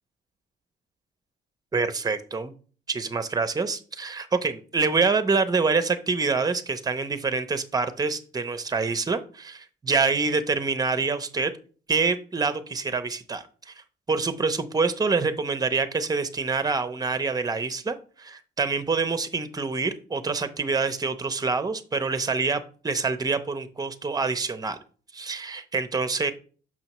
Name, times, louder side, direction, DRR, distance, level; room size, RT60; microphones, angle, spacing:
voice 1, 1.7-2.5 2.9-11.5 11.9-13.7 14.1-24.8 25.1-26.3, right 4 dB, 20° right, 12 dB, 0.6 m, -26 dB
6.0 x 5.4 x 3.0 m, 0.41 s
cardioid pair, 90°, 20 cm